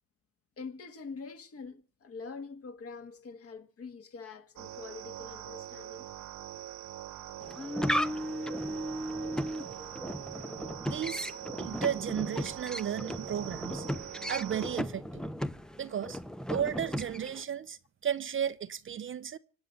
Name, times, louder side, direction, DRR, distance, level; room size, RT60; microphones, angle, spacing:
voice 1, 0.6-6.1 11.3-11.4, left 4 dB, 40° left, 1.8 m, -45 dB
sound 1, 4.6-14.8, right 12 dB, 50° right, 1.3 m, -43 dB
sound 2, 7.4-17.4, equal, ahead, 0.6 m, -36 dB
voice 2, 10.9-11.3 11.6-13.9 14.3-15.2 15.8-16.2 16.5-19.4, right 9 dB, 35° right, 0.7 m, -34 dB
25.5 x 8.8 x 5.5 m
supercardioid pair, 100°, 37 cm